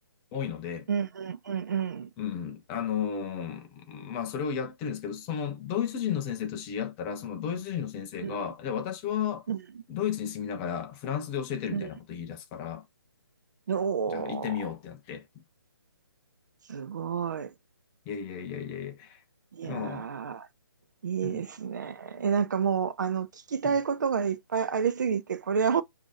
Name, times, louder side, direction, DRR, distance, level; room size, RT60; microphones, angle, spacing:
voice 1, 0.3-0.9 2.2-9.5 9.9-12.8 14.1-15.2 18.1-19.2 19.6-20.1 21.2-21.4 23.6-23.7, left 8 dB, 15° left, 0.4 m, -33 dB
voice 2, 0.9-2.1 8.2-8.4 9.5-9.6 11.7-11.9 13.7-14.6 16.7-17.5 19.5-20.5 21.0-25.8, right 6 dB, 50° right, 0.4 m, -29 dB
5.9 x 2.6 x 2.5 m
figure-of-eight pair, 140°, 13 cm